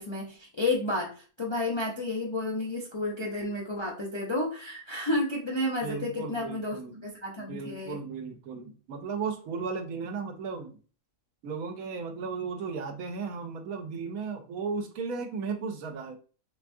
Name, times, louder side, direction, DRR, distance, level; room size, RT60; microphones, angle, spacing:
voice 1, 0.0-6.8 7.0-8.0, left 2 dB, 45° left, -2 dB, 0.3 m, -31 dB
voice 2, 5.8-7.0 7.4-10.7 11.4-16.2, right 5 dB, 85° right, 5 dB, 1.1 m, -35 dB
3.7 x 3.4 x 2.6 m, 0.38 s
omnidirectional pair, 1.4 m